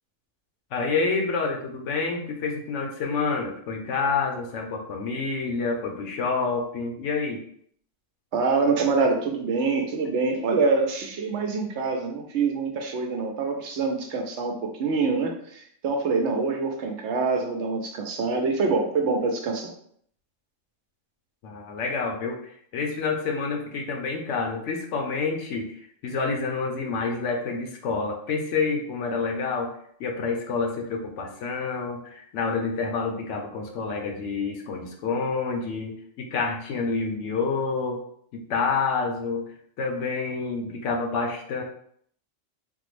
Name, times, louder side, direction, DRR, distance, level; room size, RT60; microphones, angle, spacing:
voice 1, 0.7-7.4 21.4-25.8 26.0-29.7 30.0-38.0 38.3-39.4 39.8-41.6, left 4 dB, 70° left, 2 dB, 0.9 m, -28 dB
voice 2, 8.3-19.7, right 4 dB, 70° right, 2 dB, 0.9 m, -25 dB
3.5 x 2.0 x 3.1 m, 0.64 s
omnidirectional pair, 1.3 m